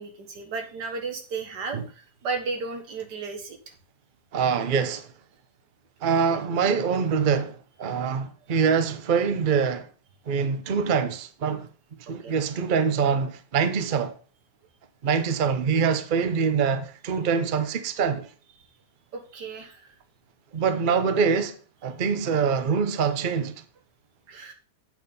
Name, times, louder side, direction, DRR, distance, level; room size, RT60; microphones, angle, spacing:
voice 1, 0.0-3.6 12.1-12.3 19.1-19.9 24.3-24.5, right 4 dB, 85° right, 2.0 m, -34 dB
voice 2, 4.3-5.1 6.0-9.9 10.3-11.7 12.1-14.1 15.0-18.3 20.5-21.6 21.8-23.6, right 6 dB, 45° right, 0.7 m, -24 dB
8.2 x 4.6 x 5.3 m
omnidirectional pair, 1.8 m